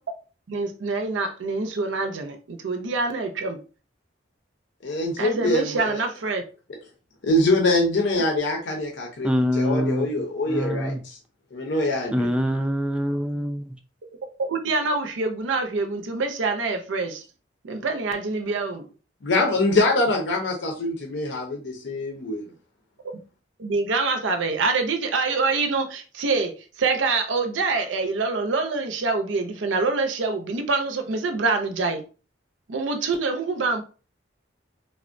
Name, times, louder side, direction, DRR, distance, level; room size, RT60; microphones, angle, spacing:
voice 1, 0.5-3.6 5.2-6.4 14.5-17.2 17.6-18.8 23.6-32.0 32.7-33.8, right 3 dB, 90° right, 0.5 m, -25 dB
voice 2, 4.8-6.0 7.2-11.1 11.5-12.3 19.2-22.5, left 2 dB, 70° left, 0.6 m, -24 dB
voice 3, 9.2-10.1 10.5-11.0 12.1-13.8, equal, 5° right, 0.3 m, -24 dB
3.4 x 2.1 x 2.5 m
head